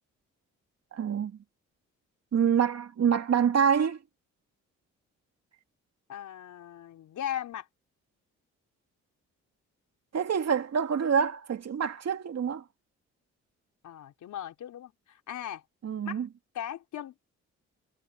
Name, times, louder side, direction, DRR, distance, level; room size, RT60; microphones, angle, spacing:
voice 1, 0.9-1.4 2.3-4.0 10.1-12.6 15.8-16.3, right 7 dB, 60° right, 2.7 m, -26 dB
voice 2, 6.1-7.7 13.8-15.6 16.0-16.3 16.5-17.1, left 10 dB, 75° left, 4.2 m, -38 dB
supercardioid pair, 65°, 30 cm